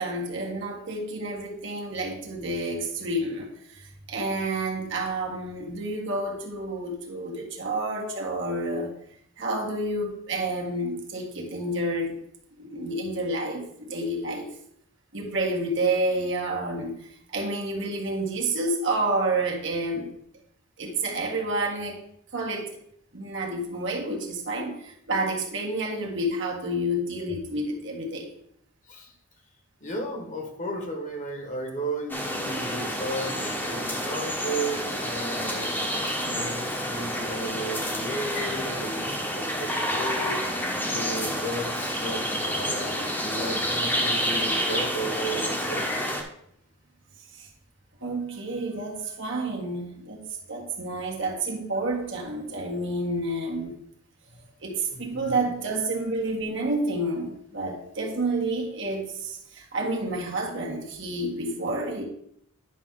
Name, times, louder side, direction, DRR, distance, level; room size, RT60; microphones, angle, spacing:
voice 1, 0.0-8.9 9.4-12.2 12.6-14.5 15.1-20.1 20.8-22.0 22.3-22.7 23.1-28.3 47.3-47.5 48.0-50.2 50.5-53.8 54.6-62.0, right 2 dB, 60° right, -1 dB, 1.8 m, -29 dB
voice 2, 29.8-40.4 40.9-45.9 54.9-55.4, right 1 dB, 35° left, 3 dB, 1.4 m, -34 dB
sound 1, 32.1-46.2, equal, 10° left, 1.2 m, -29 dB
10.0 x 6.1 x 3.8 m, 0.72 s
head